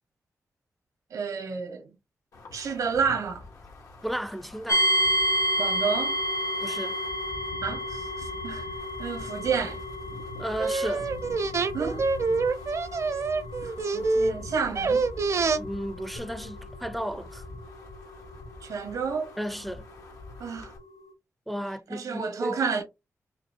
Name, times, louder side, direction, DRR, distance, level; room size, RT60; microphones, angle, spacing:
voice 1, 1.1-1.9 2.5-3.4 5.6-6.2 7.6-8.7 9.0-9.8 11.7-12.1 13.6-15.0 18.6-19.3 20.4-20.7 21.9-22.8, right 5 dB, 90° right, 1.2 m, -30 dB
Wind, 2.3-20.8, left 2 dB, 85° left, 1.3 m, -45 dB
voice 2, 4.0-4.9 6.6-7.0 10.4-11.1 15.5-17.4 19.4-19.9 21.5-22.8, equal, ahead, 0.4 m, -34 dB
sound 1, 4.7-19.5, equal, 70° left, 0.8 m, -31 dB
sound 2, 10.6-14.3 14.7-15.6 16.2-16.3, right 4 dB, 60° right, 0.6 m, -26 dB
5.3 x 2.3 x 2.8 m
cardioid pair, 70°, 6 cm